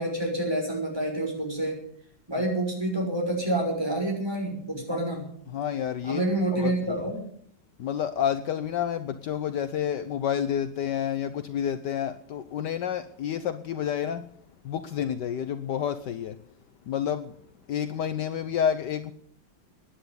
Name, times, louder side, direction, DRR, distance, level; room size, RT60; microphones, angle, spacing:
voice 1, 0.0-1.8 2.3-5.3 6.0-7.2, right 1 dB, 10° right, 0 dB, 5.8 m, -28 dB
voice 2, 5.5-6.2 6.6-7.0 7.8-14.2 14.6-16.4 16.9-17.4 17.7-19.1, left 9 dB, 65° left, 10 dB, 1.4 m, -29 dB
16.0 x 10.5 x 8.1 m, 0.62 s
omnidirectional pair, 2.1 m